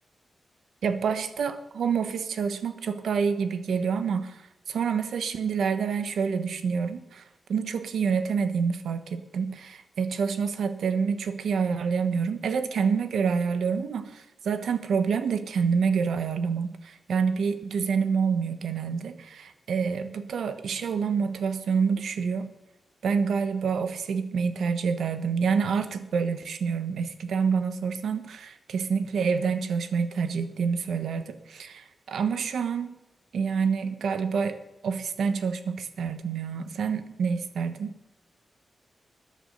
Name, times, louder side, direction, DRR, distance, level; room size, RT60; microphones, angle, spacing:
voice 1, 0.8-4.4 4.7-7.2 7.5-22.5 23.0-33.0 33.3-38.0, right 6 dB, 85° right, 10 dB, 1.1 m, -27 dB
14.0 x 10.0 x 5.4 m, 0.98 s
wide cardioid pair, 145°, 0 cm